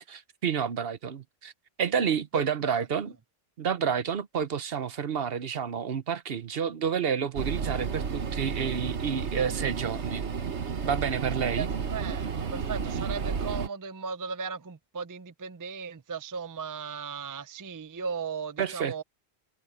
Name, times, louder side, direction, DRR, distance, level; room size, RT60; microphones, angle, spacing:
voice 1, 0.0-1.5 1.8-3.1 3.6-10.3 10.8-11.7 18.6-19.0, right 7 dB, 60° right, 1.0 m, -29 dB
voice 2, 2.3-2.9 11.5-19.0, right 5 dB, 25° right, 0.5 m, -37 dB
sound 1, 7.3-13.7, right 6 dB, 85° right, 1.4 m, -32 dB
omnidirectional pair, 1.1 m